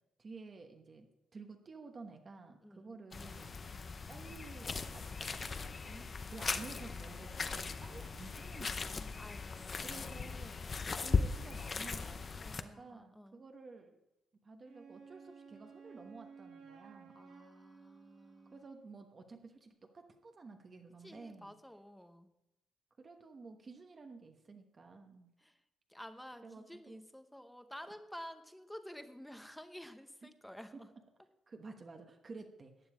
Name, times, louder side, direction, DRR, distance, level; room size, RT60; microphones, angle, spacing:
voice 1, 0.2-3.5 4.1-9.3 9.8-10.7 10.9-14.0 14.4-17.2 18.5-21.6 23.0-25.3 26.4-27.0 30.2-30.3 30.7-30.8 31.5-32.9, right 4 dB, 30° right, 4 dB, 1.1 m, -52 dB
sound 1, 3.1-12.6, left 4 dB, 30° left, 0.7 m, -38 dB
voice 2, 9.2-10.1 12.4-13.4 17.1-18.7 21.0-22.3 25.4-25.6 25.9-30.9, equal, 5° left, 9 dB, 0.9 m, -51 dB
Wind instrument woodwind instrument, 14.6-19.0, right 5 dB, 90° right, 4.6 m, -56 dB
14.5 x 9.5 x 4.9 m, 0.88 s
cardioid pair, 150°, 0 cm